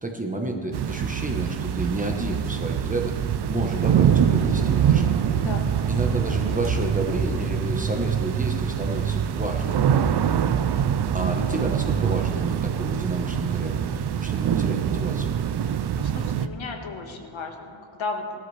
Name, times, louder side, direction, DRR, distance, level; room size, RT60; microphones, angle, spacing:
voice 1, 0.0-3.2 3.5-5.0 5.9-10.1 11.1-15.3, right 2 dB, 15° right, 2 dB, 1.0 m, -30 dB
sound 1, 0.7-16.5, right 9 dB, 55° right, 0.5 m, -24 dB
Thunder / Rain, 3.7-12.2 12.5-12.7 13.1-13.3, right 2 dB, 85° right, 1.9 m, -37 dB
voice 2, 15.9-18.4, left 4 dB, 70° left, 3 dB, 1.5 m, -34 dB
18.5 x 12.5 x 3.3 m, 2.5 s
wide cardioid pair, 170°, 49 cm